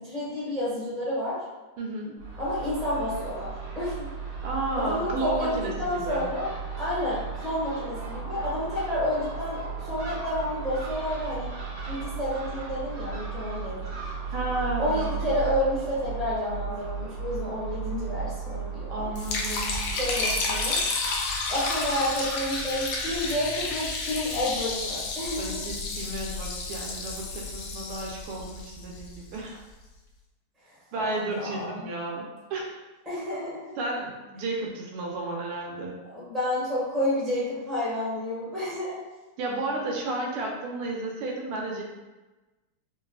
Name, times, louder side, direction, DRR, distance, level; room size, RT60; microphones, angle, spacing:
voice 1, 0.0-1.4 2.4-4.1 4.7-6.5 6.8-11.5 11.9-13.8 14.8-19.1 20.0-20.8 21.5-25.6 30.6-31.9 33.0-33.8 36.0-39.0, left 1 dB, ahead, -10 dB, 0.7 m, -30 dB
voice 2, 1.8-2.1 4.4-6.2 14.3-15.2 18.9-19.8 25.4-29.6 30.9-32.8 33.8-36.0 39.4-41.8, right 2 dB, 85° right, -1 dB, 1.5 m, -32 dB
Crow / Gull seagull, 2.2-20.8, right 5 dB, 65° right, 1.4 m, -35 dB
Liquid, 19.2-29.4, left 3 dB, 75° left, 1.1 m, -31 dB
4.1 x 2.3 x 2.3 m, 1.2 s
omnidirectional pair, 2.4 m